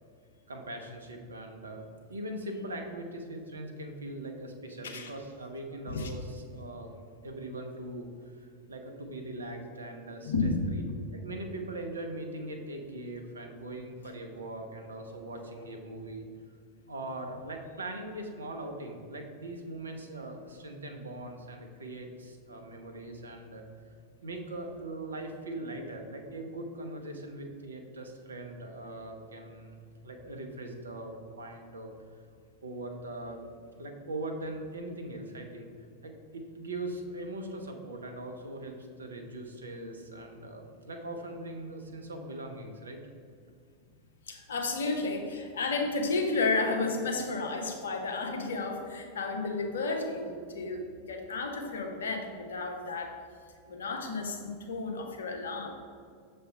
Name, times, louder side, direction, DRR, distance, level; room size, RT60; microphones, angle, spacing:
voice 1, 0.5-1.8 2.1-6.9 7.2-10.8 11.1-16.3 16.9-24.0 24.2-29.8 30.0-31.9 32.6-33.4 33.8-35.7 36.0-43.0, right 1 dB, 80° right, 4 dB, 0.8 m, -41 dB
voice 2, 10.2-10.7 15.3-15.4 44.3-53.1 53.7-55.7, left 3 dB, 75° left, 3 dB, 0.9 m, -32 dB
6.8 x 3.3 x 5.5 m, 2.2 s
figure-of-eight pair, 90°, 0 cm